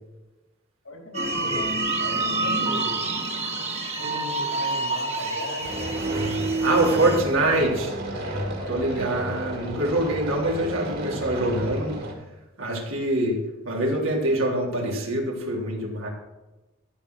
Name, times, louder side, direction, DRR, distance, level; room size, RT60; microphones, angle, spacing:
voice 1, 0.8-3.1 4.0-9.1 12.6-12.8, equal, 80° left, 1 dB, 4.3 m, -38 dB
sound 1, 1.1-7.2, right 3 dB, 30° right, 1.6 m, -27 dB
sound 2, 5.6-12.1, right 1 dB, 50° right, 2.7 m, -33 dB
voice 2, 6.6-7.9 8.7-12.0 12.6-13.4 13.7-16.1, right 1 dB, 80° right, -1 dB, 3.5 m, -24 dB
14.0 x 6.8 x 6.3 m, 1.0 s
head